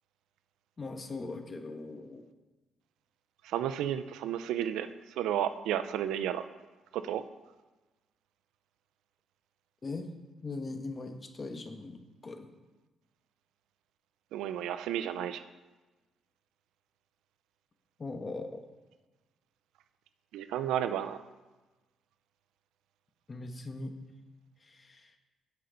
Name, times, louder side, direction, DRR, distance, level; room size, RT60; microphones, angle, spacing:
voice 1, 0.8-2.2 9.8-10.1 10.4-12.5 18.0-18.6 23.3-24.0 24.6-25.1, left 3 dB, 30° left, 6 dB, 1.2 m, -40 dB
voice 2, 3.4-4.9 5.2-6.4 6.9-7.2 14.3-15.4 20.3-21.2, right 10 dB, 90° right, 11 dB, 0.5 m, -32 dB
17.0 x 5.6 x 3.9 m, 1.2 s
cardioid pair, 90°, 0 cm